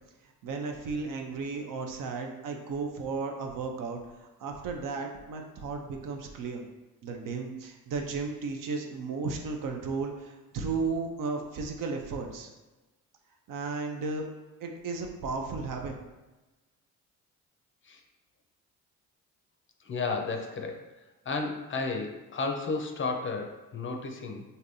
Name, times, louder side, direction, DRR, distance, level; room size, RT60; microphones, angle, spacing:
voice 1, 0.4-6.6 7.0-12.5 13.5-14.3 14.6-15.9, right 4 dB, 60° right, 3 dB, 0.6 m, -34 dB
voice 2, 19.8-20.9 21.3-24.4, left 3 dB, 35° left, 3 dB, 0.5 m, -33 dB
3.2 x 2.7 x 2.6 m, 1.1 s
hypercardioid pair, 55°, 37 cm